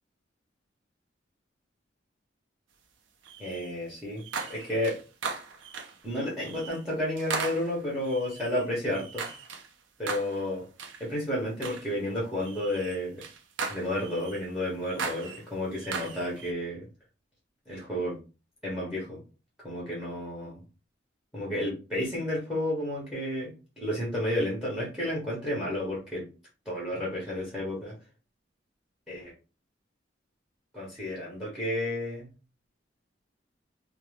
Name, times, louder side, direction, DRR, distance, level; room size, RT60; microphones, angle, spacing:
sound 1, 3.2-3.7 4.2-6.0 6.4-6.8 7.2-9.7 10.1-10.4 10.8-11.0 11.6-11.9 12.4-14.4 14.8-16.5, right 5 dB, 85° right, 0.5 m, -38 dB
voice 1, 3.4-4.2 4.5-5.0 6.0-9.3 10.0-10.6 11.0-13.2 13.7-16.9 17.7-18.2 18.6-19.2 19.6-20.6 21.3-26.3 26.6-27.9 29.1-29.3 30.7-32.3, left 1 dB, 5° right, -5 dB, 0.9 m, -31 dB
2.7 x 2.1 x 3.2 m, 0.33 s
head